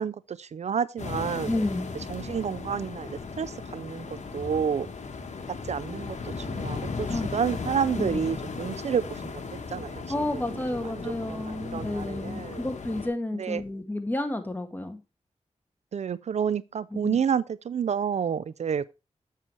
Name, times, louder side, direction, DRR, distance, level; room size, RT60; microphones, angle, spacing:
voice 1, 0.0-1.5 2.1-4.1 4.3-4.9 5.6-10.0 10.5-12.6 13.3-13.6 15.9-18.9, right 7 dB, 65° right, 0.4 m, -30 dB
sound 1, 1.0-13.1, left 4 dB, 70° left, 1.3 m, -36 dB
voice 2, 1.5-1.9 7.1-7.4 8.0-8.2 10.1-15.0 16.9-17.2, left 1 dB, 15° left, 1.5 m, -31 dB
7.4 x 7.3 x 3.1 m
cardioid pair, 60°, 12 cm